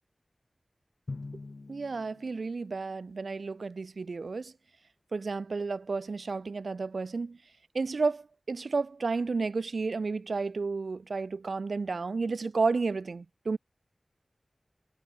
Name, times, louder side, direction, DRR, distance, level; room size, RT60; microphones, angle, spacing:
Drum, 1.1-3.3, left 3 dB, 65° left, 2.2 m, -44 dB
voice 1, 1.7-4.5 5.1-7.4 7.7-13.6, right 4 dB, 85° right, 0.7 m, -32 dB
wide cardioid pair, 45°, 0 cm